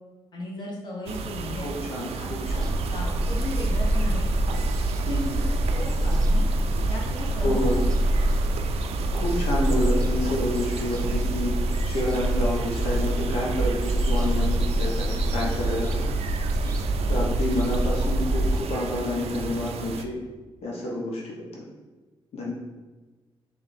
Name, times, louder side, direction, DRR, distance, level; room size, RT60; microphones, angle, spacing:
voice 1, 0.3-1.7 2.1-2.6 2.9-4.3 5.1-5.3 5.6-7.9 8.2-8.3, left 2 dB, 45° left, -2 dB, 1.1 m, -36 dB
sound 1, 1.1-20.1, right 5 dB, 85° right, 0.4 m, -34 dB
voice 2, 1.6-2.7 5.1-5.4 7.4-7.8 9.1-11.6 11.8-16.1 17.1-20.1 20.6-21.2 21.5-21.6 22.3-22.5, left 1 dB, 80° left, -4 dB, 1.0 m, -29 dB
sound 2, 2.5-18.6, right 1 dB, 35° right, 0.7 m, -25 dB
3.7 x 3.4 x 4.2 m, 1.3 s
cardioid pair, 125°, 10 cm